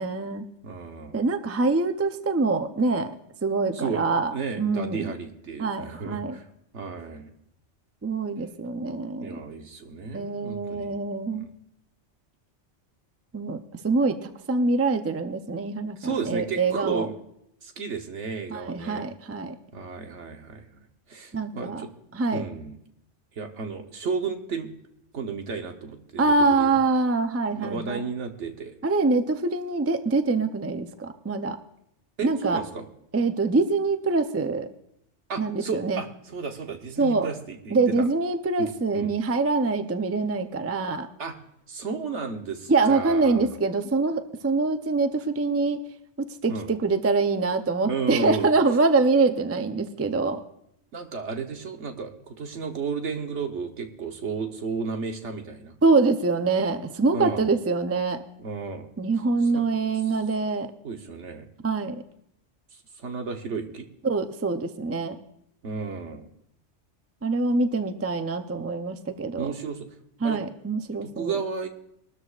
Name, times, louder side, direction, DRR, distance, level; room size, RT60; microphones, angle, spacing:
voice 1, 0.0-0.4 1.1-3.1 3.4-4.3 4.6-5.1 5.6-6.4 8.0-9.4 10.1-11.5 13.3-13.6 13.8-17.1 18.5-19.6 21.3-21.8 22.1-22.4 26.2-28.0 28.8-31.6 32.2-32.6 33.1-34.7 35.4-36.0 37.0-37.3 37.7-41.1 42.7-45.8 46.2-50.4 55.8-58.2 59.0-60.7 61.6-62.0 64.0-65.2 67.2-69.5 70.2-71.4, right 3 dB, 20° right, 8 dB, 0.5 m, -24 dB
voice 2, 0.6-1.2 3.7-4.1 4.3-6.5 6.7-7.3 9.2-10.9 11.4-11.5 16.0-17.1 17.6-19.1 19.7-21.9 22.3-22.8 23.4-24.7 25.1-26.7 27.5-28.7 32.2-32.9 35.3-38.0 38.6-39.1 41.2-41.3 41.7-43.4 46.5-46.7 47.8-48.5 50.9-55.7 57.1-57.5 58.4-58.9 59.5-59.6 60.8-61.5 63.0-63.9 65.6-66.3 69.4-69.9 70.2-70.4 71.0-71.7, right 5 dB, 75° right, 4 dB, 1.4 m, -33 dB
21.5 x 13.0 x 2.5 m, 0.77 s
omnidirectional pair, 1.2 m